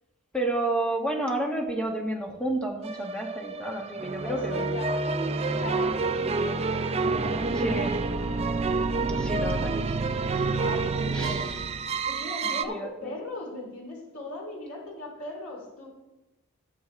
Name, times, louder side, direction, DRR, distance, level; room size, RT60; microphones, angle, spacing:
voice 1, 0.3-4.7 7.5-8.0 9.1-10.5 11.1-11.6 12.7-13.1, right 1 dB, 5° left, 1 dB, 1.5 m, -31 dB
sound 1, 2.8-12.6, right 3 dB, 30° right, 0.4 m, -28 dB
voice 2, 4.2-8.6 10.5-11.6 12.1-15.9, left 2 dB, 80° left, -2 dB, 3.0 m, -39 dB
17.0 x 7.0 x 3.3 m, 1.0 s
head